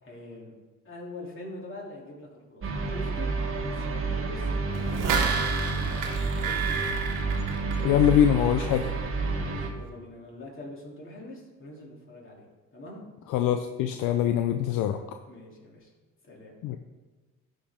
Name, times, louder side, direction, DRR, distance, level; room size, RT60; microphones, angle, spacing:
voice 1, 0.0-0.5 0.8-3.3 3.7-6.9 9.2-12.4 12.7-13.0 15.3-15.9 16.2-16.6, left 2 dB, 40° left, -4 dB, 3.1 m, -44 dB
sound 1, 2.6-9.7, right 3 dB, 40° right, 1.4 m, -29 dB
sound 2, 4.7-8.3 8.6-8.7, right 5 dB, 70° right, 1.4 m, -30 dB
voice 2, 7.8-8.9 13.3-15.0 16.6-16.8, left 10 dB, 70° left, 7 dB, 0.6 m, -23 dB
13.0 x 5.1 x 3.7 m, 1.3 s
supercardioid pair, 85°, 33 cm